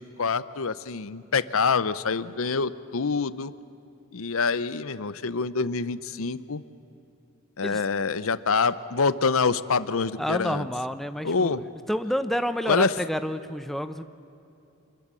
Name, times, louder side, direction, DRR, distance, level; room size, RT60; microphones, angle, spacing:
voice 1, 0.0-3.5 4.1-6.6 7.6-10.7 11.2-11.7 12.7-12.9, left 4 dB, 75° left, 15 dB, 0.7 m, -26 dB
voice 2, 10.2-14.0, equal, ahead, 9 dB, 0.6 m, -29 dB
27.0 x 21.5 x 7.5 m, 2.8 s
head